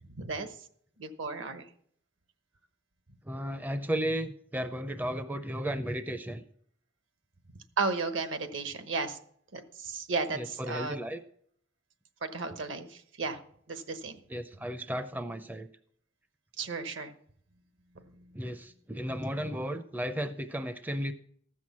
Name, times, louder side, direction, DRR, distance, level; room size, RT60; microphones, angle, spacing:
voice 1, 0.1-0.6 1.0-1.7 7.8-9.2 9.5-11.0 12.2-13.4 13.7-14.2 16.6-17.1 17.9-18.3, right 4 dB, 70° right, 9 dB, 1.1 m, -34 dB
voice 2, 3.2-6.4 10.3-11.2 14.3-15.7 18.3-21.1, equal, 10° right, 10 dB, 0.4 m, -34 dB
14.5 x 6.2 x 7.3 m, 0.65 s
head